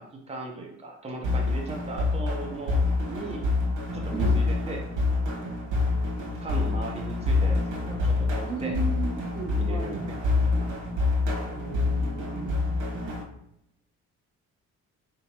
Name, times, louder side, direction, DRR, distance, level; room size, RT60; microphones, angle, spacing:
voice 1, 0.0-3.4 3.9-4.8 6.4-8.8 9.6-10.7 12.3-12.6, right 2 dB, 20° right, -1 dB, 1.0 m, -38 dB
sound 1, 1.2-13.2, left 3 dB, 85° right, 1.2 m, -27 dB
voice 2, 4.1-4.4 8.5-10.1 11.5-12.8, right 2 dB, 45° right, -7 dB, 1.6 m, -36 dB
4.1 x 3.8 x 2.9 m, 0.78 s
cardioid pair, 90°, 30 cm